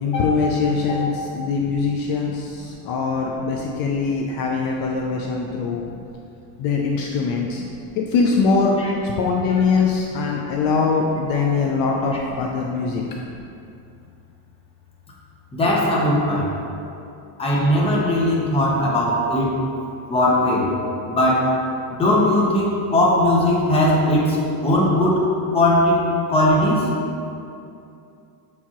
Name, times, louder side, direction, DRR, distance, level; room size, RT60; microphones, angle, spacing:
voice 1, 0.0-1.1 1.3-5.8 6.6-7.6 8.0-8.7 9.0-13.0, left 4 dB, 50° left, 0 dB, 0.5 m, -22 dB
voice 2, 15.5-16.5 17.4-19.5 20.1-20.7 21.1-21.5 21.9-26.9, left 1 dB, 10° left, -4 dB, 0.7 m, -19 dB
6.9 x 4.6 x 2.9 m, 2.7 s
cardioid pair, 160°, 47 cm